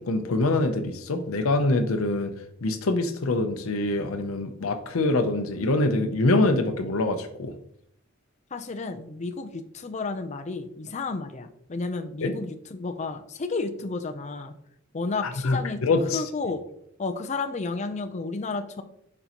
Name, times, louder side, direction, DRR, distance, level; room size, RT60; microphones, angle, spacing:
voice 1, 0.0-2.3 2.6-7.5 12.2-12.3 15.4-16.2, left 2 dB, 85° left, 7 dB, 0.6 m, -24 dB
voice 2, 8.5-14.5 14.9-15.8 16.1-16.6 17.0-18.8, left 3 dB, 35° left, 7 dB, 0.5 m, -32 dB
6.6 x 5.3 x 2.9 m, 0.72 s
head